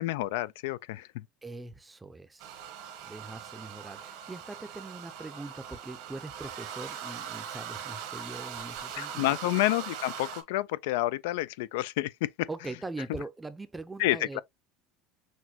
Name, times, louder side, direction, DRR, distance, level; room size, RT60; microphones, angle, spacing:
voice 1, 0.0-1.2 9.0-12.5 14.0-14.4, left 17 dB, 85° left, 0.3 m, -29 dB
voice 2, 1.4-2.5 3.0-9.4 12.5-14.4, right 2 dB, 10° right, 0.5 m, -42 dB
sound 1, 2.4-10.4, right 8 dB, 70° right, 1.1 m, -41 dB
6.2 x 2.2 x 2.8 m
supercardioid pair, 130°, 0 cm